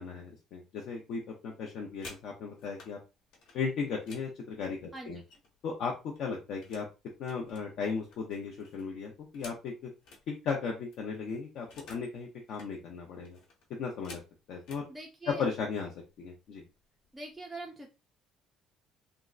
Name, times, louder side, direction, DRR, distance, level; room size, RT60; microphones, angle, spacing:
voice 1, 0.0-3.0 3.5-5.2 5.6-6.9 7.2-9.9 10.3-13.4 13.8-14.2 14.5-14.9 15.3-15.9 16.2-16.6, left 5 dB, 55° left, 0 dB, 0.5 m, -36 dB
sound 1, 1.8-2.9 3.3-5.7 6.0-6.9 7.2-10.2 10.6-10.7 10.9-12.1 12.4-12.7 13.2-14.9 15.7-15.9 16.2-16.5 16.8-17.3, left 3 dB, 75° left, 1.1 m, -53 dB
voice 2, 4.9-5.2 14.9-15.4 17.1-17.9, right 2 dB, 5° right, -1 dB, 0.3 m, -43 dB
3.4 x 2.0 x 2.4 m, 0.29 s
cardioid pair, 180°, 0 cm